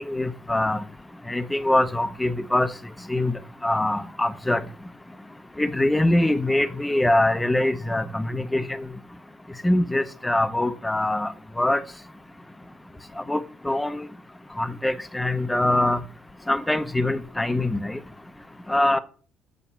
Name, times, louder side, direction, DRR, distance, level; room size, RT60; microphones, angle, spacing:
voice 1, 0.1-0.8 1.3-2.7 3.1-3.3 3.6-4.6 5.6-8.9 9.6-11.3 11.6-11.8 13.3-14.0 14.6-16.0 16.5-18.0 18.7-19.0, left 1 dB, 10° left, 0.6 m, -23 dB
7.3 x 5.4 x 5.7 m
cardioid pair, 140°, 0 cm